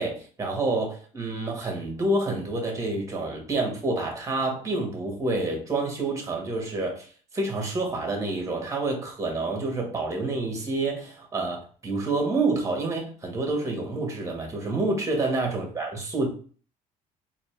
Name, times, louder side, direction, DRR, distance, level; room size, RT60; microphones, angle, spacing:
voice 1, 0.0-7.1 7.3-16.3, right 2 dB, 20° right, 1 dB, 1.6 m, -28 dB
4.0 x 2.9 x 3.4 m, 0.42 s
cardioid pair, 115°, 15 cm